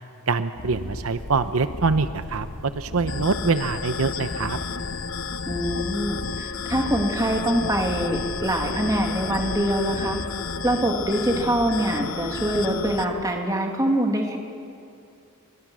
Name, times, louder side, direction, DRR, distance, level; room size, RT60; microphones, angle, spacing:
voice 1, 0.3-4.6, right 4 dB, 75° right, 11 dB, 0.8 m, -24 dB
sound 1, 0.5-13.2, equal, 90° left, 2.5 m, -37 dB
sound 2, 3.1-13.1, left 5 dB, 65° left, 0.9 m, -32 dB
voice 2, 5.5-10.2 10.6-14.4, right 1 dB, 15° right, 2 dB, 2.5 m, -24 dB
29.5 x 24.0 x 6.3 m, 2.5 s
head